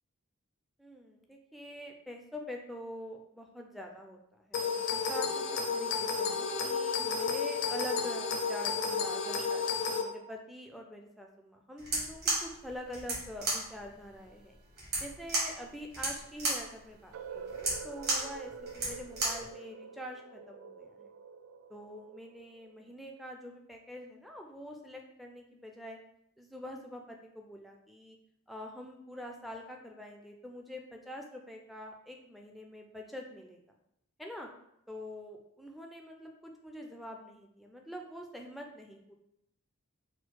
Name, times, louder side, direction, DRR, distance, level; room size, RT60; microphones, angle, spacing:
voice 1, 0.8-14.6 15.0-21.1 21.7-26.0 26.4-28.2 28.5-33.6 34.2-34.5 34.9-39.1, equal, ahead, 1 dB, 0.4 m, -45 dB
sound 1, 4.5-10.0, left 5 dB, 60° left, 0.5 m, -32 dB
sound 2, 11.8-19.5, right 2 dB, 50° right, 1.5 m, -34 dB
sound 3, 17.1-23.0, right 6 dB, 80° right, 0.3 m, -47 dB
4.4 x 2.1 x 4.5 m, 0.79 s
head